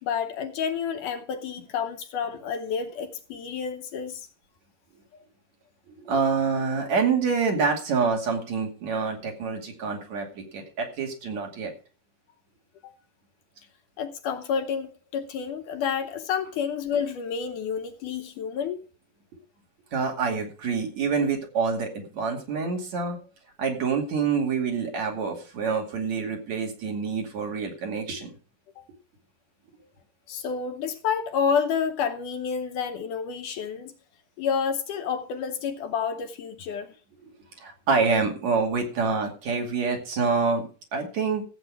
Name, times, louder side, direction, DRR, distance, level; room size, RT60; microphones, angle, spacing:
voice 1, 0.0-4.3 12.8-12.9 14.0-18.8 28.8-28.9 30.3-33.9 34.4-37.0, left 7 dB, 75° left, 2.2 m, -29 dB
voice 2, 5.9-11.7 19.9-23.2 23.6-28.3 37.6-41.4, right 5 dB, 55° right, 3.5 m, -27 dB
15.0 x 8.5 x 4.8 m
omnidirectional pair, 4.1 m